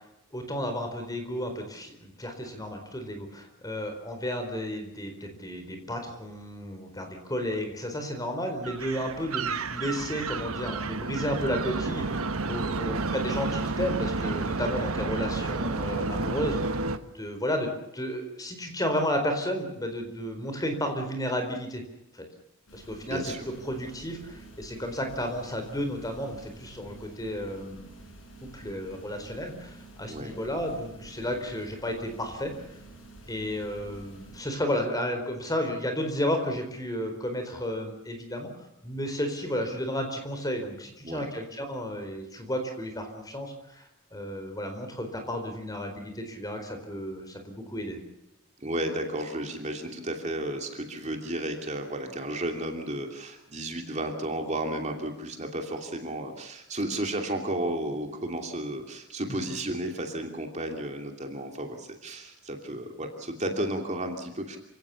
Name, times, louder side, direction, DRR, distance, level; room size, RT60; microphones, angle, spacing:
voice 1, 0.3-16.8 17.1-21.8 22.1-22.2 22.7-23.3 23.6-28.0 28.4-32.5 33.3-38.5 38.8-48.0 59.3-59.5, equal, 15° left, 5 dB, 4.3 m, -32 dB
sound 1, 8.6-17.0, right 3 dB, 80° right, 1.3 m, -31 dB
voice 2, 12.7-13.0 23.1-23.5 30.1-30.4 41.0-41.3 48.6-64.6, right 1 dB, 30° right, 4 dB, 2.8 m, -33 dB
sound 2, 22.7-34.4, right 2 dB, 65° left, 5.7 m, -49 dB
28.0 x 17.0 x 7.1 m, 0.86 s
head